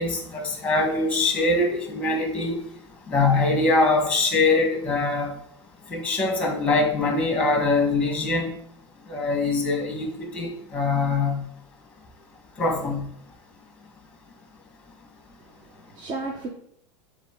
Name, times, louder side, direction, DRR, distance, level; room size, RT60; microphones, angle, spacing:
voice 1, 0.0-2.6 3.1-5.3 5.9-8.5 9.1-11.4 12.6-13.0, left 3 dB, 10° left, 3 dB, 1.4 m, -23 dB
voice 2, 15.4-16.5, right 3 dB, 30° right, 3 dB, 0.7 m, -34 dB
7.2 x 4.0 x 3.7 m, 0.70 s
supercardioid pair, 145°, 15 cm